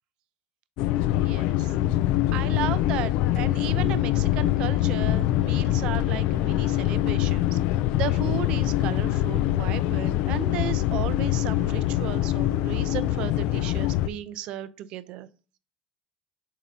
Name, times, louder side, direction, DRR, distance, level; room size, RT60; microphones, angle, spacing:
sound 1, 0.8-14.1, left 14 dB, 60° left, 0.3 m, -24 dB
voice 1, 1.1-1.7 2.3-7.6 8.0-15.3, right 12 dB, 50° right, 0.5 m, -35 dB
7.4 x 2.7 x 5.1 m
cardioid pair, 155°, 2 cm